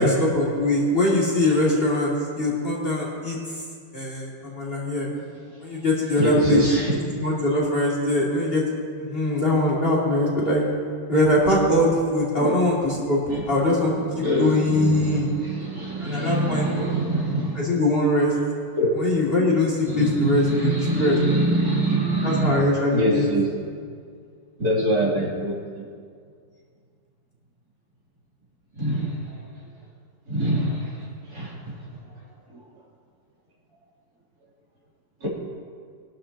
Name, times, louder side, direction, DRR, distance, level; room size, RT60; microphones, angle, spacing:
voice 1, 0.0-3.4 3.9-5.1 5.6-6.6 7.2-8.6 9.0-10.6 11.1-15.3 16.0-16.7 17.6-18.3 19.0-21.2 22.2-23.3, left 1 dB, 30° left, -4 dB, 2.6 m, -22 dB
voice 2, 6.2-7.0 12.4-12.7 13.3-13.4 13.7-13.8 14.2-17.7 18.8-19.1 19.9-22.6 22.9-23.5 24.6-25.8 28.8-29.4 30.3-32.0 32.5-32.6 35.2-35.3, right 1 dB, 60° right, -6 dB, 3.5 m, -24 dB
21.0 x 12.5 x 2.9 m, 2.1 s
omnidirectional pair, 2.0 m